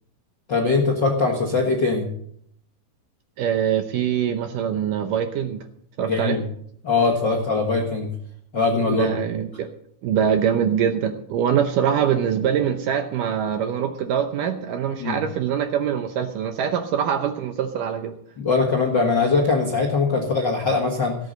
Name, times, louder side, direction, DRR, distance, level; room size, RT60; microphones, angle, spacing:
voice 1, 0.5-2.1 6.0-6.4 6.8-8.1 8.5-9.1 15.0-15.2 18.4-21.1, left 4 dB, 50° left, 1 dB, 1.4 m, -21 dB
voice 2, 3.4-5.7 6.0-6.4 8.9-9.7 10.0-18.1, right 8 dB, 75° right, 7 dB, 2.1 m, -23 dB
17.0 x 8.3 x 6.6 m, 0.68 s
omnidirectional pair, 4.6 m